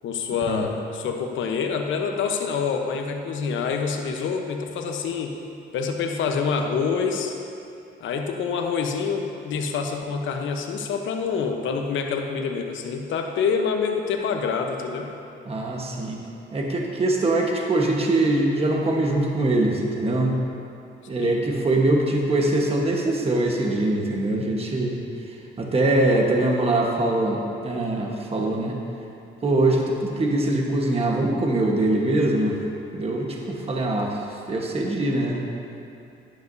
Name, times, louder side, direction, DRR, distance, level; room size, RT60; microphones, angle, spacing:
voice 1, 0.0-5.4 5.7-7.3 8.0-15.1 21.2-21.4, left 5 dB, 75° left, 4 dB, 1.0 m, -26 dB
voice 2, 15.5-16.2 16.5-20.3 21.1-25.0 25.6-28.8 29.4-32.6 32.9-34.2 34.5-35.4, right 2 dB, 30° right, 0 dB, 1.3 m, -23 dB
12.0 x 10.5 x 2.7 m, 2.6 s
cardioid pair, 90°, 20 cm